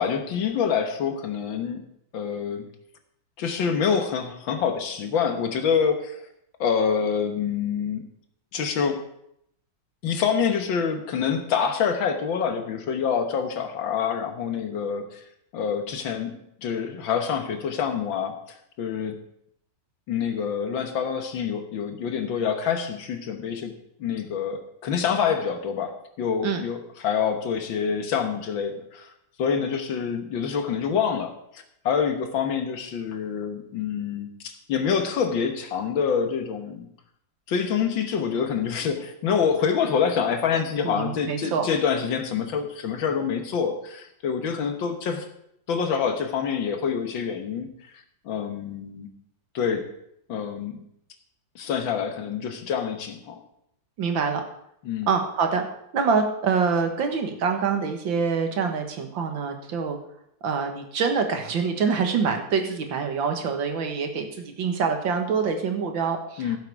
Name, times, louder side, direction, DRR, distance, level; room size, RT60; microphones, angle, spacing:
voice 1, 0.0-1.8 2.1-2.7 3.4-6.2 6.6-8.1 8.5-9.0 10.0-15.2 15.5-18.4 18.8-19.2 20.1-23.7 24.0-29.1 29.4-36.9 37.5-45.3 45.7-47.7 48.3-49.1 49.5-49.9 50.3-50.8 51.6-53.4 54.9-55.1 66.4-66.6, left 7 dB, 90° left, 6 dB, 2.1 m, -26 dB
voice 2, 40.8-41.7 54.0-54.4 55.1-55.6 55.9-60.0 60.4-66.6, right 5 dB, 85° right, 5 dB, 2.1 m, -25 dB
15.5 x 7.7 x 4.7 m, 0.75 s
omnidirectional pair, 2.0 m